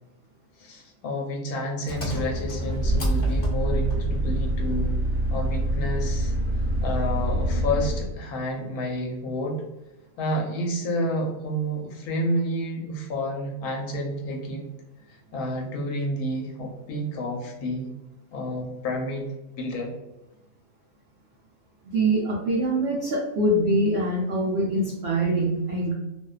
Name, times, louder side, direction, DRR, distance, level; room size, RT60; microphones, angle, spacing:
voice 1, 0.6-4.9 5.3-6.3 6.8-9.6 10.2-14.6 15.3-17.9 18.3-19.3 19.6-19.9, equal, 75° left, 0 dB, 1.0 m, -29 dB
Engine, 1.9-8.2, right 1 dB, 50° left, 0.7 m, -25 dB
voice 2, 21.9-25.9, right 1 dB, 80° right, -4 dB, 0.5 m, -24 dB
2.6 x 2.2 x 2.3 m, 0.98 s
omnidirectional pair, 1.7 m